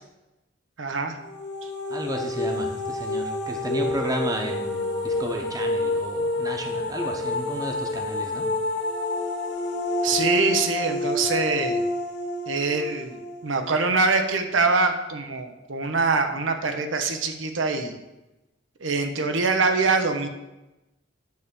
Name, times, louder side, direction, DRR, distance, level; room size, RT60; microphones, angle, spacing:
voice 1, 0.8-1.2 10.0-11.8 12.5-18.0 18.8-20.3, right 4 dB, 90° right, 6 dB, 0.9 m, -24 dB
sound 1, 1.2-14.1, left 2 dB, 60° left, 1.4 m, -28 dB
voice 2, 1.9-8.4, right 1 dB, 20° right, 2 dB, 1.0 m, -32 dB
9.5 x 3.5 x 6.9 m, 1.0 s
head